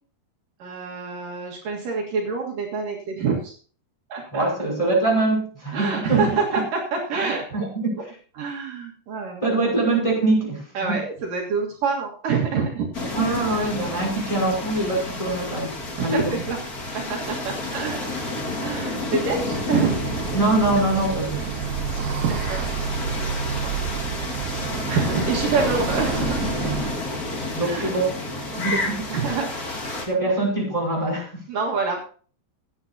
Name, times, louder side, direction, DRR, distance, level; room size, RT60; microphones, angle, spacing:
voice 1, 0.6-3.5 4.1-4.5 5.7-7.7 8.4-9.4 10.7-13.1 16.0-16.6 16.9-20.0 21.3-21.5 22.2-22.6 22.9-23.3 23.6-23.7 24.5-26.4 27.6-27.9 28.5-29.5 31.5-32.0, right 5 dB, 65° right, -1 dB, 3.2 m, -27 dB
voice 2, 4.3-6.2 6.5-6.6 7.5-8.1 9.4-11.0 13.2-16.3 20.3-21.5 22.0-22.1 26.6-26.9 27.5-28.1 28.5-29.0 30.1-31.4, right 2 dB, 10° left, -3 dB, 5.2 m, -23 dB
sound 1, 12.9-30.1, left 2 dB, 35° left, 1.7 m, -30 dB
sound 2, 19.9-27.0, right 8 dB, 80° right, 1.8 m, -30 dB
17.0 x 10.0 x 2.8 m, 0.42 s
omnidirectional pair, 4.4 m